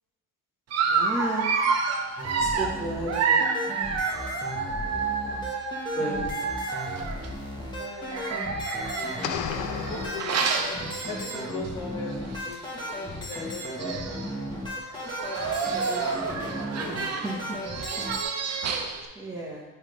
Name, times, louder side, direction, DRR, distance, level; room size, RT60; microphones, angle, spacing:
Dog, 0.7-7.3 8.1-11.7 12.1-12.3 12.5-12.6 13.5-13.6 13.8-14.3 15.0-19.1, right 5 dB, 45° right, 0.7 m, -29 dB
voice 1, 0.9-1.5 2.4-3.8 5.5-5.6 5.9-6.3 15.8-17.6 19.1-19.6, right 1 dB, 10° right, -6 dB, 1.0 m, -34 dB
sound 1, 2.2-18.2, equal, 10° left, 1.2 m, -35 dB
voice 2, 4.9-5.4 7.8-8.4 8.8-10.4 11.1-14.7, left 4 dB, 80° left, -2 dB, 1.0 m, -40 dB
sound 2, 9.2-11.2, left 9 dB, 60° left, 0.5 m, -34 dB
7.4 x 3.3 x 5.0 m, 1.3 s
cardioid pair, 120°, 37 cm